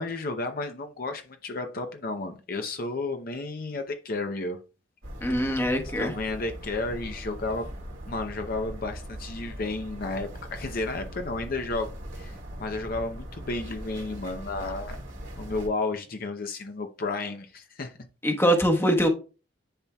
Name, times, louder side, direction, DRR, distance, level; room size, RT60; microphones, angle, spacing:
voice 1, 0.0-4.6 5.4-5.7 6.0-7.7 8.1-11.9 12.1-15.0 15.4-17.9, left 3 dB, 50° left, 0.7 m, -32 dB
sound 1, 5.0-15.7, equal, 80° right, 2.3 m, -40 dB
voice 2, 5.2-6.1 18.2-19.1, equal, 15° left, 1.1 m, -23 dB
10.0 x 4.3 x 2.3 m
head